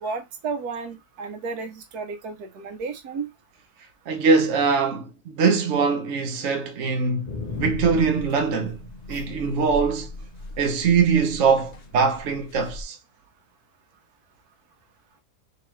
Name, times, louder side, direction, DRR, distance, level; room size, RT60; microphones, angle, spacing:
voice 1, 0.0-3.3 9.1-9.2, right 4 dB, 80° right, 1.2 m, -33 dB
voice 2, 4.1-7.3 7.6-8.8 9.1-10.1 10.6-13.0, right 5 dB, 60° right, 1.0 m, -22 dB
sound 1, 7.3-12.8, left 3 dB, 85° left, 0.3 m, -37 dB
3.8 x 2.8 x 3.0 m
omnidirectional pair, 1.6 m